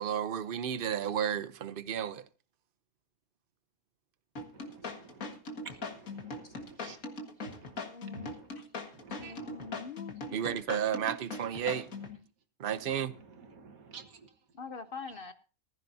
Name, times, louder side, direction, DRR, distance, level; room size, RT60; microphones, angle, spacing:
voice 1, 0.0-2.2 10.3-11.9 12.6-13.1, right 9 dB, 50° right, 0.8 m, -32 dB
sound 1, 4.4-12.2, left 3 dB, 75° left, 2.2 m, -40 dB
voice 2, 4.5-7.0 7.4-7.8 8.1-8.5 8.9-9.7 11.4-12.1 12.7-14.4, right 4 dB, 80° right, 1.8 m, -51 dB
voice 3, 7.5-8.3 9.2-10.6 14.5-15.3, left 5 dB, 50° left, 0.7 m, -45 dB
15.0 x 14.5 x 2.7 m
omnidirectional pair, 1.5 m